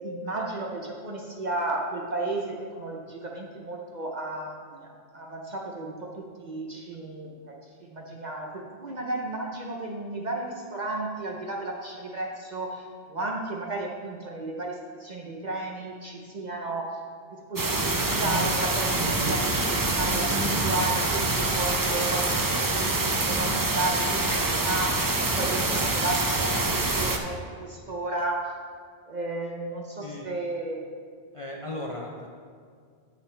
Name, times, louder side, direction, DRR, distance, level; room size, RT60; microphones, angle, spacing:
voice 1, 0.0-7.5 7.8-17.0 17.3-28.5 29.1-30.9, right 2 dB, 45° right, 0 dB, 0.8 m, -33 dB
sound 1, 17.6-27.2, right 2 dB, 25° right, 0.4 m, -25 dB
voice 2, 31.3-32.3, left 1 dB, 35° left, -2 dB, 0.6 m, -36 dB
8.8 x 7.6 x 3.3 m, 2.1 s
omnidirectional pair, 1.1 m